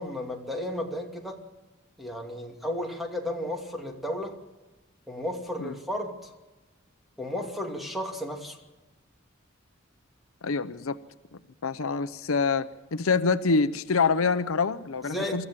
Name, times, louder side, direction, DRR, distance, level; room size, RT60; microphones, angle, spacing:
voice 1, 0.0-1.4 2.0-4.4 5.1-6.3 7.2-8.6 15.0-15.5, left 1 dB, ahead, 1 dB, 2.5 m, -33 dB
voice 2, 10.4-11.0 11.6-15.4, left 4 dB, 85° left, 12 dB, 0.8 m, -26 dB
24.5 x 14.0 x 7.5 m, 1.2 s
head